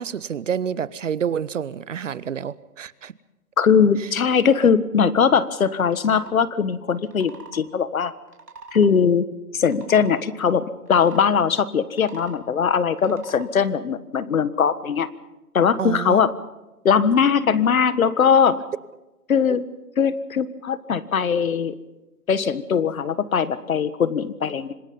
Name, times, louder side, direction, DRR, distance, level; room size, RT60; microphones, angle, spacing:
voice 1, 0.0-3.1 4.0-4.1 15.8-16.3, right 7 dB, 50° right, 20 dB, 0.8 m, -28 dB
voice 2, 3.6-8.1 8.7-9.3 9.5-15.1 15.5-16.3 16.9-18.6 19.3-19.6 20.0-21.8 22.3-24.7, left 6 dB, 60° left, 15 dB, 1.6 m, -20 dB
sound 1, 5.8-6.3 7.0-7.6 8.3-8.9 9.5-10.2 10.9-11.3 11.8-12.4 13.0-13.5, right 3 dB, 80° right, 3.9 m, -43 dB
26.5 x 20.0 x 5.4 m, 1.0 s
hypercardioid pair, 160°, 46 cm